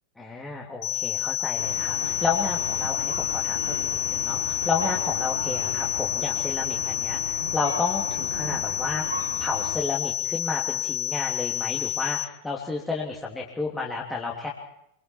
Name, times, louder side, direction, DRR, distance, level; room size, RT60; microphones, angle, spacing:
voice 1, 0.2-14.5, left 4 dB, 10° left, -3 dB, 3.3 m, -31 dB
sound 1, 0.8-12.2, left 11 dB, 35° left, 1.3 m, -29 dB
sound 2, 1.6-9.8, right 2 dB, 85° right, 5.2 m, -35 dB
27.0 x 23.5 x 4.7 m, 0.77 s
figure-of-eight pair, 90°, 0 cm